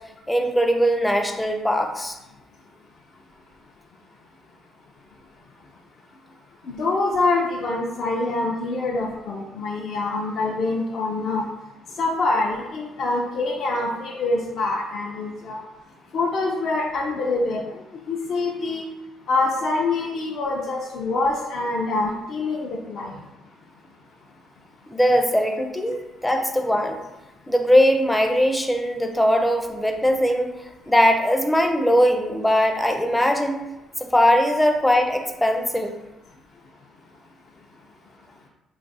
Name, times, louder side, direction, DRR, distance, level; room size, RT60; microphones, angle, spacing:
voice 1, 0.3-2.2 24.9-27.0 27.5-30.5 30.9-33.6 34.0-36.0, equal, 10° left, 4 dB, 0.4 m, -20 dB
voice 2, 6.6-11.5 12.0-15.6 16.1-17.8 18.1-18.8 19.3-23.2, left 3 dB, 60° left, -2 dB, 0.5 m, -25 dB
3.3 x 2.4 x 3.9 m, 0.98 s
cardioid pair, 105°, 0 cm